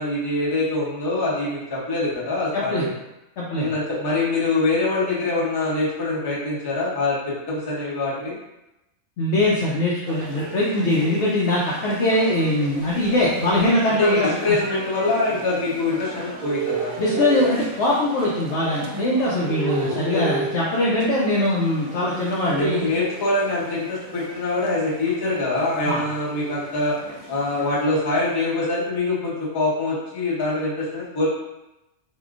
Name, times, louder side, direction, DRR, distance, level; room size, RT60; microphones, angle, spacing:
voice 1, 0.0-2.9 3.5-8.3 14.0-17.3 19.8-20.5 22.6-27.0 27.3-31.3, left 2 dB, 25° left, -7 dB, 0.6 m, -24 dB
voice 2, 3.4-3.7 9.2-14.6 17.0-22.9 25.8-26.0, left 1 dB, 65° left, -6 dB, 0.9 m, -22 dB
sound 1, 10.1-27.9, right 5 dB, 85° right, 1.1 m, -34 dB
3.6 x 2.4 x 2.4 m, 0.93 s
omnidirectional pair, 1.4 m